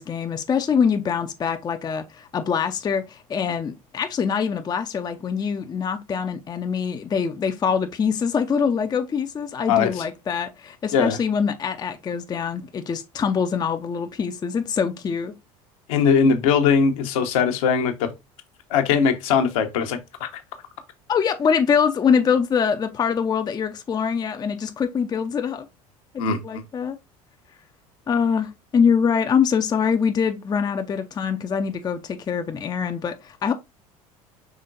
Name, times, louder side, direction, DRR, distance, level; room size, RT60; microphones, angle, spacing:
voice 1, 0.0-15.3 21.1-25.7 26.4-27.0 28.1-33.5, left 6 dB, 20° left, 0.5 m, -24 dB
voice 2, 15.9-18.1 18.7-20.4 26.2-26.6, left 6 dB, 65° left, 0.9 m, -20 dB
5.0 x 3.6 x 2.6 m
figure-of-eight pair, 65°, 19 cm